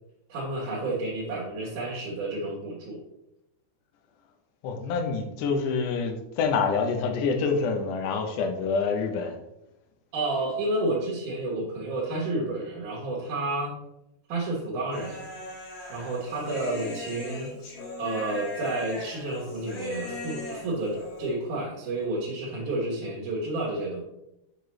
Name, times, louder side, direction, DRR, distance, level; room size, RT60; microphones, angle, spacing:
voice 1, 0.3-3.0 10.1-13.7 14.3-15.2 15.9-17.5 18.0-24.0, right 2 dB, 65° right, -4 dB, 2.2 m, -30 dB
voice 2, 4.6-9.3, left 5 dB, 85° left, 4 dB, 1.8 m, -27 dB
Human voice, 14.9-21.3, left 1 dB, 45° left, 2.3 m, -39 dB
6.6 x 4.7 x 3.1 m, 0.87 s
omnidirectional pair, 4.7 m